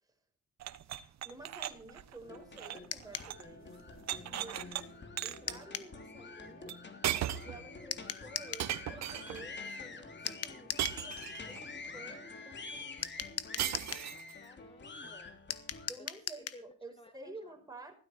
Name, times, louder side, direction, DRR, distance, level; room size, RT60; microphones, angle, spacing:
sound 1, 0.6-3.5 3.8-4.8 5.2-5.6 6.7-6.8 7.0-7.6 8.6-9.5 10.8-11.6 13.6-14.3, right 11 dB, 65° right, 1.3 m, -37 dB
voice 1, 1.2-3.8 4.2-4.8 5.2-6.7 7.4-13.8 15.9-17.9, right 2 dB, 10° right, 5.8 m, -52 dB
sound 2, 2.2-15.9, left 3 dB, 40° left, 3.2 m, -47 dB
sound 3, 2.9-3.3 5.5-5.9 7.9-8.7 10.3-11.0 13.0-14.1 15.5-16.6, left 9 dB, 55° left, 1.5 m, -39 dB
voice 2, 14.4-15.4 16.0-16.1 16.4-17.5, left 2 dB, 20° left, 1.7 m, -56 dB
16.5 x 13.0 x 4.5 m
cardioid pair, 80°, 29 cm